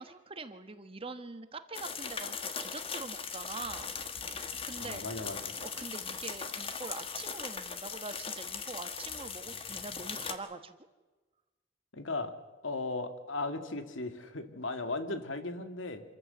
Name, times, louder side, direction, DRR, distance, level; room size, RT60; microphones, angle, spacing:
voice 1, 0.0-3.9 4.6-5.0 5.6-10.7, right 3 dB, 30° right, 9 dB, 1.2 m, -44 dB
sound 1, 1.7-10.4, left 6 dB, 30° left, 1.4 m, -39 dB
voice 2, 4.8-5.5 11.9-12.3 12.6-16.0, left 2 dB, 80° left, 7 dB, 2.1 m, -36 dB
26.5 x 14.5 x 7.9 m, 1.2 s
head